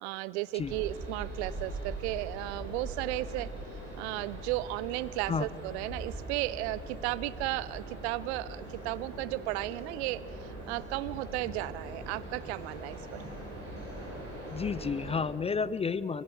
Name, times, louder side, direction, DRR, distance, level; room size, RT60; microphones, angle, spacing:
voice 1, 0.0-3.5 4.0-10.2 10.7-13.2, right 17 dB, 60° right, 19 dB, 0.7 m, -34 dB
sound 1, 0.6-15.2, right 1 dB, 80° right, 7.5 m, -42 dB
voice 2, 14.5-16.2, left 5 dB, 15° left, 18 dB, 0.5 m, -31 dB
24.0 x 23.0 x 7.5 m, 3.0 s
figure-of-eight pair, 55°, 37 cm